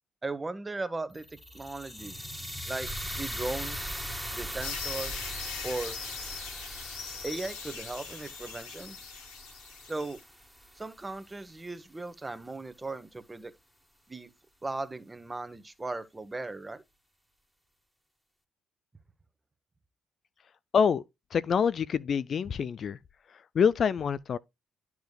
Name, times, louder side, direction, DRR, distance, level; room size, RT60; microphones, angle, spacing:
voice 1, 0.2-2.2 2.6-4.0 4.3-5.1 5.6-6.0 7.2-9.0 9.8-10.2 10.7-13.5 14.1-14.3 14.6-16.8, right 3 dB, 20° right, 0.9 m, -37 dB
sound 1, 1.1-11.3, equal, ahead, 1.4 m, -40 dB
sound 2, 4.6-10.2, left 7 dB, 75° left, 1.1 m, -41 dB
voice 2, 21.3-23.0 23.5-24.4, left 7 dB, 50° left, 0.3 m, -26 dB
11.5 x 4.7 x 2.3 m
figure-of-eight pair, 45°, 0 cm